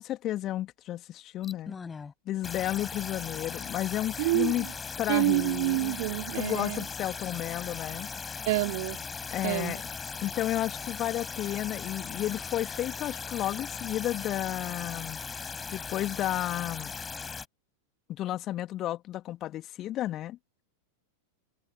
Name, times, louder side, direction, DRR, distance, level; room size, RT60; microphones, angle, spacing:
voice 1, 0.0-1.7 2.3-4.7 5.0-6.0 6.3-8.1 9.3-9.8 10.2-15.2 15.7-16.9 18.1-20.4, left 13 dB, 35° left, 2.5 m, -32 dB
sound 1, 1.4-2.1 2.4-17.5, left 5 dB, 15° left, 7.4 m, -38 dB
voice 2, 4.2-4.7 5.1-6.9 8.5-9.0 9.4-9.8, right 21 dB, 50° right, 3.9 m, -28 dB
figure-of-eight pair, 90°, 0 cm